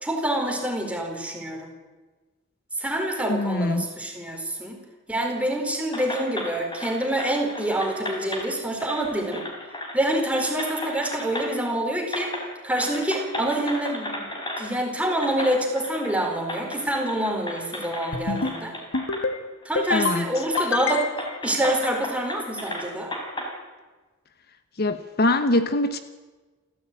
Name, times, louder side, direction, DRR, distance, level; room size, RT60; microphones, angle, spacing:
voice 1, 0.0-1.7 2.8-4.8 5.1-9.5 9.9-12.4 12.6-14.2 14.6-18.7 19.6-21.1 21.4-23.1, right 1 dB, 5° right, 2 dB, 4.3 m, -26 dB
voice 2, 3.3-3.9 19.9-20.3 24.8-26.0, left 2 dB, 50° left, 10 dB, 1.1 m, -23 dB
sound 1, 5.9-8.5 8.8-10.0 10.3-11.7 12.1-12.5 12.7-14.7 15.2-19.2 19.6-19.7 20.3-23.5, left 1 dB, 20° left, 5.0 m, -34 dB
sound 2, 18.1-18.6 18.9-19.4 19.8-20.2 20.6-21.3, left 4 dB, 65° left, 1.9 m, -27 dB
29.0 x 14.5 x 9.2 m, 1.3 s
head